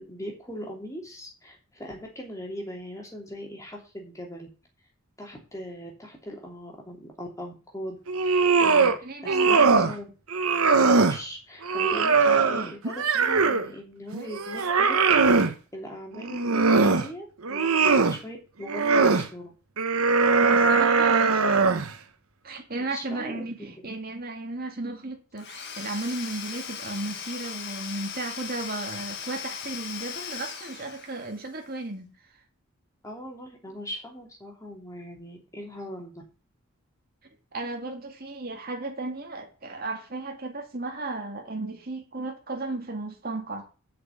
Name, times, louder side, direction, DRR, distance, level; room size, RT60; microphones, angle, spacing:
voice 1, 0.0-4.5 5.2-8.9 9.2-10.1 10.8-15.0 15.3-19.5 22.8-23.4 23.8-23.9 33.0-36.2, equal, 15° left, 2.9 m, -39 dB
sound 1, 8.1-9.0 9.3-9.9 10.3-11.2 11.6-13.7 14.1-15.5 16.2-17.1 17.4-18.2 18.7-19.3 19.8-21.9, right 4 dB, 85° right, 1.1 m, -21 dB
voice 2, 9.0-9.8 20.4-21.7 22.4-32.1 37.5-43.6, right 2 dB, 45° right, 2.2 m, -34 dB
Domestic sounds home sounds / Tools, 25.4-31.5, left 7 dB, 50° left, 1.7 m, -38 dB
7.7 x 5.9 x 7.7 m
head